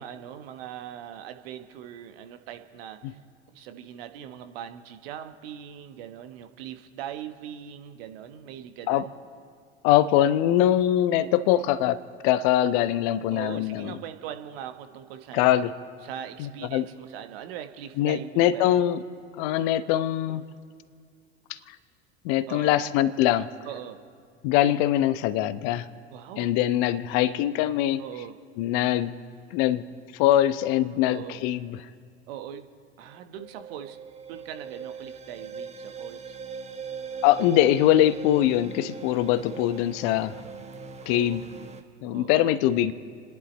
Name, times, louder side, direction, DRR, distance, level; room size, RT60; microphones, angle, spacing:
voice 1, 0.0-3.2 3.5-9.1 11.6-11.7 13.3-15.6 16.0-18.9 22.5-22.8 23.6-24.0 26.1-26.5 28.0-28.4 31.0-31.4 32.3-32.7 33.0-34.0 34.3-36.4 41.0-41.4 42.1-42.6, right 10 dB, 60° right, 8 dB, 1.2 m, -40 dB
voice 2, 9.8-14.0 15.3-15.7 16.4-16.8 18.0-19.0 19.4-20.4 21.5-21.8 22.2-23.5 24.4-25.9 26.4-28.0 28.6-29.1 29.5-29.9 30.1-31.8 37.2-40.4 41.1-41.4 42.0-42.9, left 12 dB, 50° left, 14 dB, 0.9 m, -23 dB
sound 1, 33.1-41.8, right 6 dB, 20° right, 1.4 m, -40 dB
29.5 x 10.5 x 4.3 m, 2.2 s
figure-of-eight pair, 75°, 34 cm